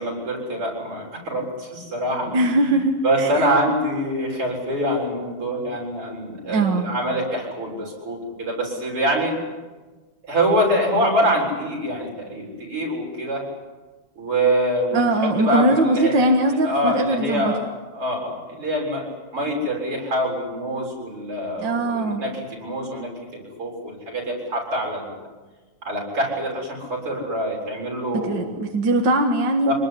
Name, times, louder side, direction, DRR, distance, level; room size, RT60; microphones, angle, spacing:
voice 1, 0.0-2.4 2.6-2.7 3.0-9.4 10.2-13.5 14.2-17.6 17.9-19.1 19.3-25.1 25.8-28.5 29.7-29.8, right 1 dB, 80° right, -1 dB, 8.1 m, -25 dB
voice 2, 2.3-3.5 6.5-6.9 14.9-17.6 21.6-22.2 28.1-29.7, right 1 dB, 55° right, 3 dB, 2.3 m, -21 dB
25.5 x 20.5 x 10.0 m, 1.3 s
omnidirectional pair, 2.4 m